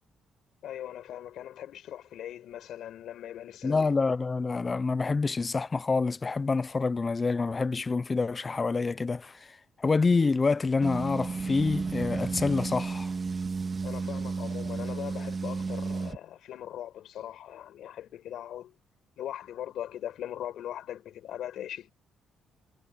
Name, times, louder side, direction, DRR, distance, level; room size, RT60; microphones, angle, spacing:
voice 1, 0.6-3.9 13.8-18.7 19.2-21.9, left 11 dB, 75° left, 4.7 m, -40 dB
voice 2, 3.6-13.1, left 4 dB, 30° left, 0.6 m, -27 dB
sound 1, 10.8-16.2, right 4 dB, 35° right, 1.9 m, -33 dB
cardioid pair, 90°, 0 cm